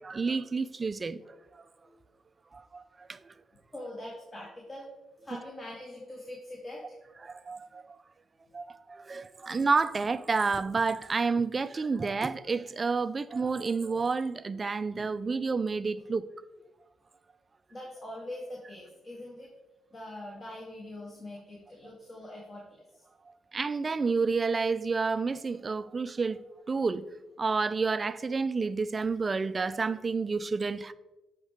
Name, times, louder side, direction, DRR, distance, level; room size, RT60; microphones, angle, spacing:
voice 1, 0.0-1.2 1.5-1.6 2.5-3.3 7.2-8.0 8.5-16.3 23.5-26.4 26.7-27.1 27.4-30.9, right 4 dB, 30° right, 0.3 m, -30 dB
voice 2, 3.7-4.9 5.2-7.0 7.5-7.6 8.4-8.6 9.4-9.5 17.7-19.5 19.9-22.8, left 1 dB, 30° left, 1.9 m, -43 dB
10.5 x 4.7 x 3.5 m
cardioid pair, 100°, 0 cm